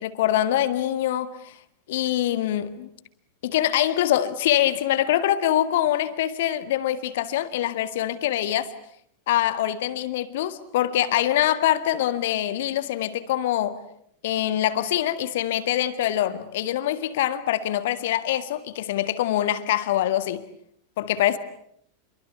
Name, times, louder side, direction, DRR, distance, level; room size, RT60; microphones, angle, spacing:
voice 1, 0.0-1.5 1.9-2.9 3.4-8.7 9.3-13.8 14.2-20.4 21.0-21.4, left 12 dB, 55° left, 1.8 m, -24 dB
30.0 x 23.5 x 8.5 m
figure-of-eight pair, 90°, 0 cm